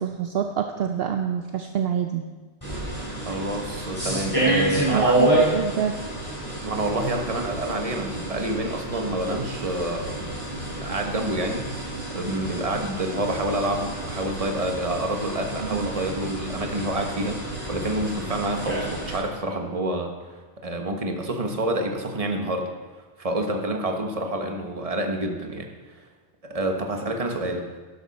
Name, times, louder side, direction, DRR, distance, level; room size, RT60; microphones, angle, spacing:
voice 1, 0.0-2.2 4.9-6.2 15.6-15.9, right 8 dB, 60° right, 5 dB, 0.8 m, -27 dB
sound 1, 2.6-19.1, right 1 dB, 20° left, 4.5 m, -29 dB
voice 2, 3.2-5.3 6.6-10.3 10.7-11.7 12.1-20.1 20.6-22.7 23.2-25.7 26.4-27.7, right 1 dB, 30° right, 3 dB, 1.2 m, -28 dB
12.0 x 11.0 x 4.1 m, 1.3 s
omnidirectional pair, 1.2 m